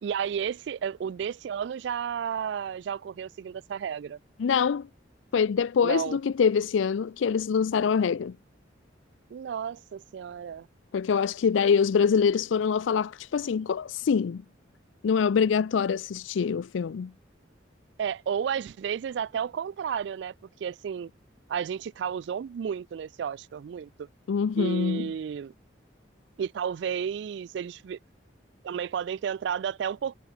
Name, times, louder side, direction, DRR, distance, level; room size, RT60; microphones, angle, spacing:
voice 1, 0.0-4.2 5.8-6.2 9.3-10.7 18.0-20.3 20.6-21.1 21.5-24.1 24.6-25.5 26.4-28.0 28.6-30.1, right 7 dB, 65° right, 0.3 m, -32 dB
voice 2, 4.4-4.9 5.3-8.3 10.9-14.4 15.0-17.1 24.3-25.1, left 6 dB, 80° left, 0.4 m, -24 dB
head